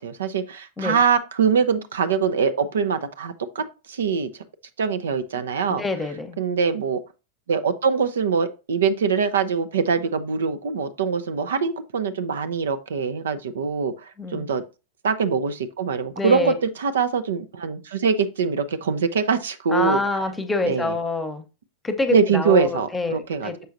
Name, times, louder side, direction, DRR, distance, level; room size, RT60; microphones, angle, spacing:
voice 1, 0.0-4.3 4.8-5.8 6.4-7.0 7.5-14.6 15.0-20.0 20.7-20.9 22.1-23.5, right 5 dB, 65° right, 0.5 m, -23 dB
voice 2, 5.7-6.4 14.2-14.5 16.2-16.5 19.7-21.4 21.8-23.7, left 3 dB, 10° left, 1.0 m, -26 dB
6.7 x 5.6 x 2.6 m
figure-of-eight pair, 90°, 0 cm